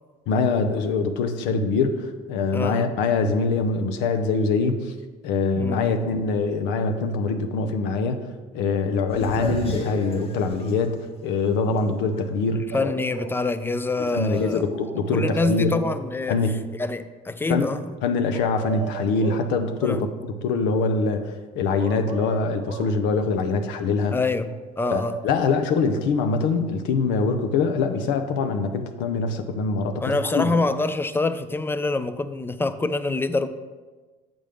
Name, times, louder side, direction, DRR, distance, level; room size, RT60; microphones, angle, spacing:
voice 1, 0.3-4.9 5.2-8.3 8.5-12.9 14.1-15.8 16.3-16.6 17.5-17.7 18.0-20.1 20.4-24.2 24.9-30.5, left 4 dB, 75° left, 7 dB, 0.6 m, -24 dB
voice 2, 2.5-2.9 5.5-6.0 12.6-14.6 15.0-16.4 16.8-18.0 19.8-20.0 24.1-25.2 30.0-33.5, left 3 dB, 10° left, 12 dB, 0.4 m, -26 dB
sound 1, 9.1-12.2 12.7-12.8 14.3-14.6, left 1 dB, 30° left, 1.0 m, -33 dB
sound 2, 12.7-13.4 14.7-16.1 18.3-19.5 21.8-23.0 24.5-25.7, right 7 dB, 45° right, 0.9 m, -36 dB
7.4 x 5.2 x 3.5 m, 1.3 s
supercardioid pair, 70°, 19 cm